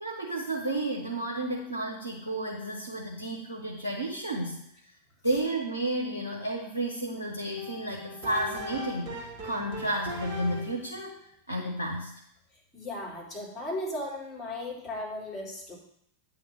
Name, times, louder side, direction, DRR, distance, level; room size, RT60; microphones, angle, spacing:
voice 1, 0.0-4.6 5.2-11.2 11.5-12.1, right 1 dB, 85° right, 2 dB, 1.0 m, -32 dB
sound 1, 7.6-10.9, left 1 dB, 40° right, 1.7 m, -39 dB
voice 2, 12.7-15.8, left 1 dB, 15° left, -5 dB, 3.7 m, -36 dB
8.5 x 3.5 x 6.6 m, 0.72 s
figure-of-eight pair, 90°, 0 cm